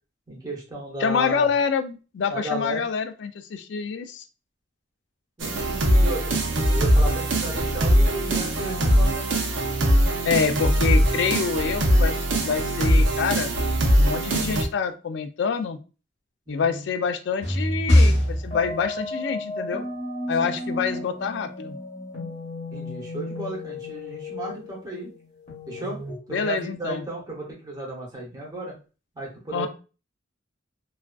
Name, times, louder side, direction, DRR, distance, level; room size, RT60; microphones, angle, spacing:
voice 1, 0.3-1.5 2.3-2.8 5.4-6.3 6.7-9.4 16.5-16.8 20.4-20.6 22.7-25.1 25.7-26.0 26.3-28.7 29.2-29.7, right 2 dB, 20° right, -3 dB, 0.7 m, -34 dB
voice 2, 1.0-4.2 10.2-13.5 14.0-15.8 16.5-19.8 20.3-21.8 26.3-27.0 29.5-29.7, left 6 dB, 60° left, 8 dB, 0.3 m, -26 dB
sound 1, 5.4-14.6, right 1 dB, 75° right, 0.6 m, -21 dB
sound 2, 17.4-26.2, left 1 dB, 30° left, 0.8 m, -27 dB
2.3 x 2.3 x 2.2 m, 0.34 s
head